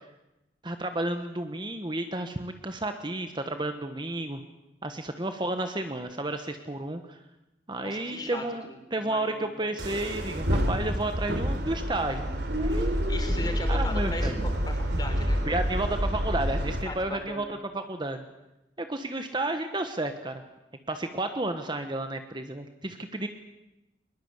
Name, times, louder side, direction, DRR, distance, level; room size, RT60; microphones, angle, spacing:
voice 1, 0.6-4.4 4.8-7.2 7.7-8.6 8.9-12.3 12.6-12.9 13.7-14.3 15.4-18.2 18.8-20.4 20.9-23.3, right 2 dB, 25° right, 7 dB, 1.3 m, -32 dB
voice 2, 7.8-9.7 10.2-10.3 12.8-14.3 14.7-15.4 16.9-17.5, left 1 dB, 25° left, 5 dB, 4.4 m, -38 dB
sound 1, 9.8-16.8, equal, 70° right, 3.7 m, -28 dB
22.0 x 21.5 x 8.2 m, 0.94 s
head